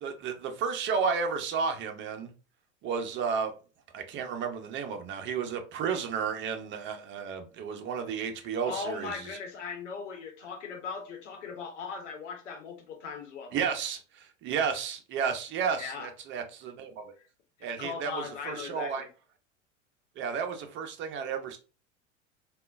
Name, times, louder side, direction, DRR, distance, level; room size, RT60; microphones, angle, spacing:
voice 1, 0.0-2.3 2.8-3.5 3.9-9.2 13.5-17.1 17.6-19.1 20.2-21.6, right 6 dB, 30° right, 0.6 m, -32 dB
voice 2, 8.6-13.5 15.8-16.1 17.6-19.1, left 5 dB, 75° left, 1.2 m, -39 dB
3.5 x 2.4 x 2.4 m
hypercardioid pair, 95°, 38 cm